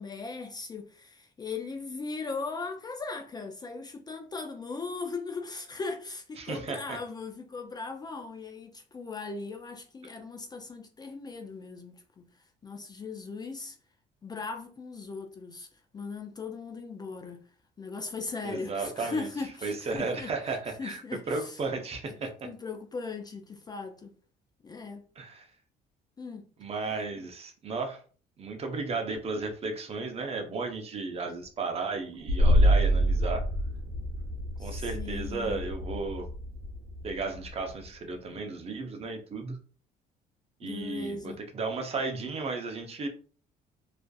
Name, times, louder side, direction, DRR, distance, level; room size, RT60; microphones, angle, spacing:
voice 1, 0.0-13.8 14.2-15.7 15.9-17.4 17.8-21.6 22.0-22.2 22.4-24.1 24.6-25.1 26.2-26.5 34.6-35.6 40.6-41.4, left 4 dB, 25° left, 0.4 m, -38 dB
voice 2, 6.4-7.0 18.4-19.3 19.6-21.0 21.3-22.3 25.2-25.5 26.6-28.0 28.4-33.4 34.6-36.3 37.0-39.6 40.6-43.1, right 3 dB, 35° right, 0.6 m, -34 dB
sound 1, 32.3-37.8, equal, 75° right, 0.7 m, -26 dB
2.4 x 2.4 x 2.3 m
cardioid pair, 110°, 17 cm